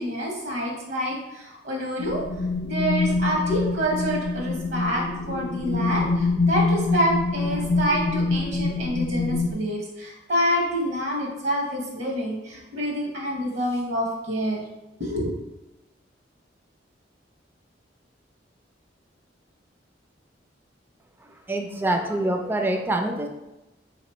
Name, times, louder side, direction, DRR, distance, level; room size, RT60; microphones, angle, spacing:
voice 1, 0.0-2.2 2.6-14.6 15.0-15.3, equal, 65° right, -1 dB, 0.9 m, -27 dB
sound 1, 2.0-9.5, left 3 dB, 85° left, 0.5 m, -25 dB
voice 2, 21.5-23.3, right 1 dB, 10° right, 4 dB, 0.3 m, -25 dB
3.7 x 2.9 x 4.3 m, 0.98 s
head